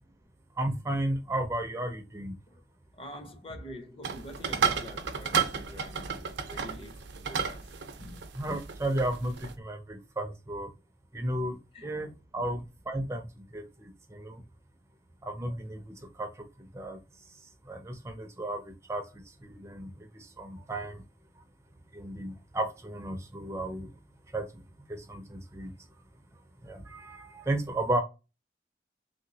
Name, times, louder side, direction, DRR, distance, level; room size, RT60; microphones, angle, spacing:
voice 1, 0.6-2.3 8.3-10.7 11.1-11.6 11.8-13.3 13.5-14.4 15.2-16.3 16.7-17.0 17.7-18.6 18.9-19.0 19.4-19.9 20.1-21.0 21.9-23.9 24.3-24.5 24.9-25.7 26.6-28.0, right 1 dB, 15° right, 0.4 m, -33 dB
voice 2, 2.9-7.7 8.0-8.2 11.7-12.4, left 1 dB, 30° left, 0.6 m, -46 dB
sound 1, 4.0-9.5, right 7 dB, 85° right, 0.5 m, -32 dB
3.1 x 2.9 x 2.7 m
head